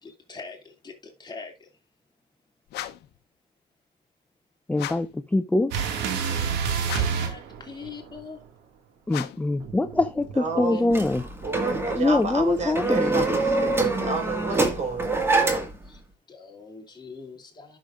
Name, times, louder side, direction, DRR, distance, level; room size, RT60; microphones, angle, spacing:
voice 1, 0.0-1.7 6.6-8.4 10.7-10.8 12.9-13.0 15.8-16.0 16.3-17.8, left 4 dB, 25° left, 2.6 m, -43 dB
sound 1, 2.7-3.2 4.7-5.2 6.8-7.3 9.1-9.6, left 13 dB, 75° left, 0.8 m, -36 dB
voice 2, 4.7-5.7 9.1-11.3 11.9-13.2, left 2 dB, 10° left, 0.5 m, -24 dB
sound 2, 5.7-8.2 9.6-10.9, right 7 dB, 90° right, 2.0 m, -29 dB
voice 3, 10.4-10.9 11.4-15.2, right 3 dB, 40° right, 4.8 m, -30 dB
sound 3, 10.9-15.9, right 3 dB, 15° right, 1.9 m, -25 dB
11.5 x 6.4 x 2.5 m
cardioid pair, 110°, 17 cm